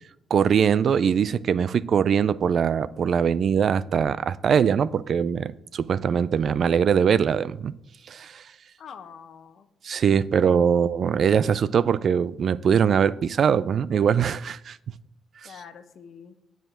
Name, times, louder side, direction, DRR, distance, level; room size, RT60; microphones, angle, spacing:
voice 1, 0.3-7.7 8.1-8.4 9.8-14.8 15.4-15.5, right 7 dB, 55° right, 0.3 m, -22 dB
voice 2, 8.8-9.7 10.7-10.8 15.4-16.4, left 7 dB, 65° left, 0.8 m, -45 dB
7.8 x 4.9 x 7.4 m
cardioid pair, 90°, 0 cm